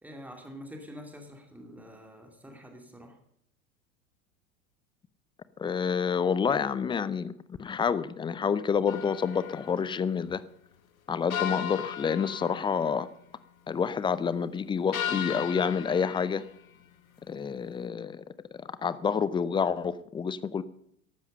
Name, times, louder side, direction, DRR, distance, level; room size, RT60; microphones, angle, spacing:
voice 1, 0.0-3.2, equal, 5° right, 3 dB, 2.8 m, -46 dB
voice 2, 5.6-7.3 7.6-10.4 11.1-13.1 13.7-16.4 17.3-18.2 18.6-20.6, left 6 dB, 10° left, 17 dB, 0.5 m, -28 dB
sound 1, 8.9-9.8 11.3-13.1 14.9-16.6, left 9 dB, 75° left, 1.3 m, -36 dB
14.5 x 12.0 x 5.2 m, 0.71 s
figure-of-eight pair, 85°, 42 cm